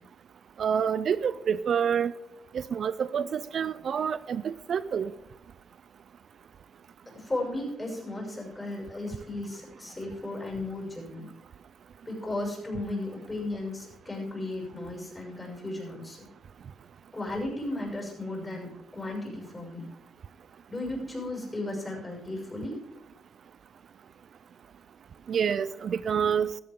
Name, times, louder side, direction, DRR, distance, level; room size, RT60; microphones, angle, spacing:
voice 1, 0.6-2.1 2.5-5.1 25.3-26.5, right 7 dB, 55° right, 16 dB, 0.4 m, -27 dB
voice 2, 7.1-11.3 12.0-16.3 17.1-19.8 20.7-22.7, left 2 dB, 15° left, -2 dB, 6.6 m, -35 dB
16.0 x 13.5 x 3.8 m, 0.85 s
cardioid pair, 90°, 0 cm